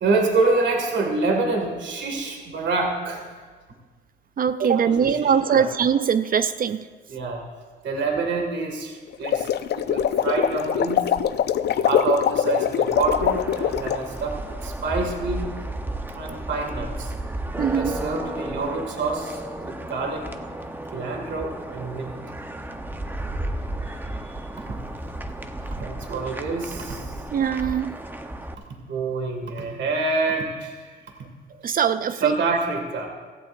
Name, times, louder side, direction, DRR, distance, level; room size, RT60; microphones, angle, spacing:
voice 1, 0.0-3.3 4.7-5.7 7.1-7.4 7.8-11.1 11.9-14.4 14.6-15.4 16.1-17.1 17.7-20.2 20.9-22.1 23.9-24.0 24.2-24.4 25.8-27.0 28.9-30.9 32.2-33.1, right 3 dB, 65° right, 2 dB, 2.0 m, -26 dB
voice 2, 4.4-6.8 17.6-18.0 27.3-28.0 31.6-32.4, right 7 dB, 45° right, 12 dB, 0.5 m, -22 dB
sound 1, 9.1-14.0, left 9 dB, 55° left, 0.5 m, -23 dB
sound 2, 12.9-28.5, right 1 dB, 10° right, 0.8 m, -33 dB
16.0 x 15.0 x 2.6 m, 1.5 s
cardioid pair, 90°, 20 cm